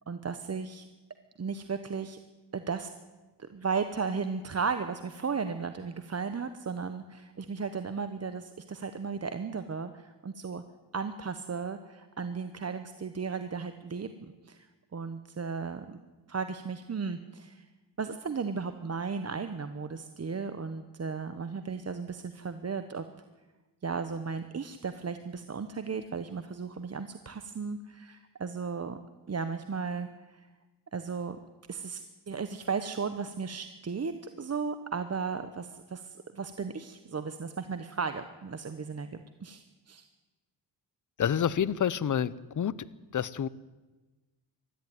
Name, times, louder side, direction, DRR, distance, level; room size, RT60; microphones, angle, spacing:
voice 1, 0.1-0.9 1.4-2.2 2.5-2.9 3.4-10.6 10.9-14.7 14.9-16.0 16.3-17.7 18.0-23.1 23.8-29.0 29.3-30.5 30.9-31.4 31.7-34.1 34.4-40.0, right 5 dB, 35° right, 10 dB, 1.0 m, -35 dB
voice 2, 41.2-42.9 43.1-43.5, left 8 dB, 45° left, 18 dB, 0.8 m, -28 dB
20.0 x 13.5 x 9.5 m, 1.2 s
cardioid pair, 105°, 43 cm